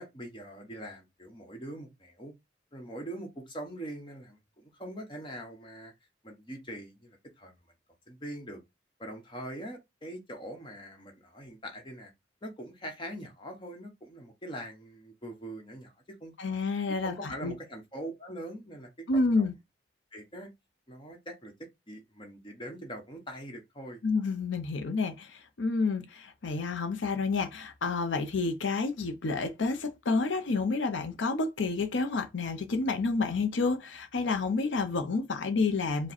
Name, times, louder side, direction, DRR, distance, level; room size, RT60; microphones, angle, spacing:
voice 1, 0.0-2.3 2.7-5.9 6.2-7.6 8.1-8.6 9.0-12.1 12.4-16.3 17.0-19.5 20.1-20.5 20.9-24.0, right 1 dB, 25° left, 1.0 m, -43 dB
voice 2, 16.4-17.5 19.1-19.5 24.0-36.1, left 3 dB, 85° left, 0.6 m, -29 dB
4.8 x 2.2 x 4.1 m
head